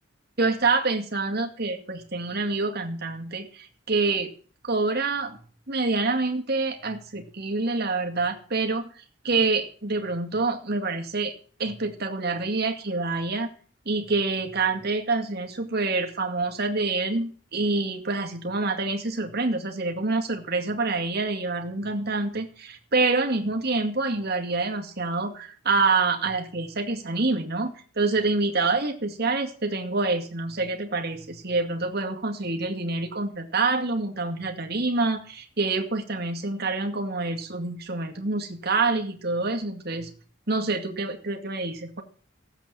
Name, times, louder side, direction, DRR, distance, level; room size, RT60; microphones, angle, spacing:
voice 1, 0.4-4.3 4.6-5.4 5.7-11.3 11.6-13.5 13.9-40.1 40.5-42.0, right 3 dB, 50° right, 4 dB, 2.1 m, -27 dB
15.5 x 8.1 x 7.5 m, 0.44 s
head